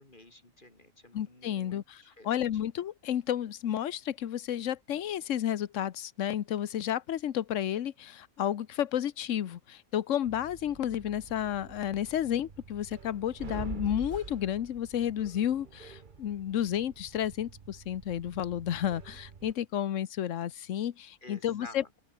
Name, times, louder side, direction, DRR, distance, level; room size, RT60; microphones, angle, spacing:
voice 1, 0.0-1.8 2.2-2.3 21.2-21.8, left 2 dB, 30° left, 5.0 m, -51 dB
voice 2, 1.1-22.0, left 10 dB, 60° left, 1.1 m, -32 dB
sound 1, 10.2-19.5, right 5 dB, 35° right, 1.1 m, -46 dB
open air
omnidirectional pair, 1.6 m